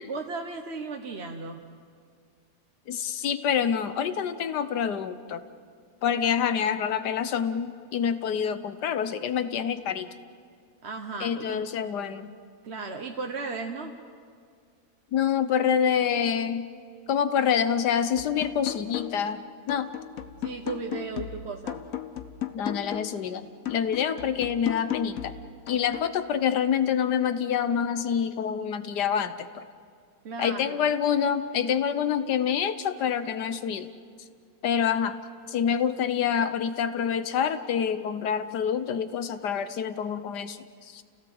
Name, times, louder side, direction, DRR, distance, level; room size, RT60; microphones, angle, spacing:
voice 1, 0.0-1.6 10.8-11.6 12.6-13.9 20.4-21.8 30.2-30.8, right 4 dB, 45° right, 3 dB, 1.2 m, -35 dB
voice 2, 2.9-5.4 6.0-10.1 11.2-12.3 15.1-16.7 17.1-19.9 22.5-25.3 25.7-29.7 30.4-33.9 34.6-35.2 35.5-41.0, left 8 dB, 85° left, 11 dB, 1.6 m, -27 dB
sound 1, 18.2-19.3 19.7-23.2 23.7-26.2, left 10 dB, 60° left, 1.3 m, -36 dB
30.0 x 17.0 x 7.9 m, 2.1 s
omnidirectional pair, 1.7 m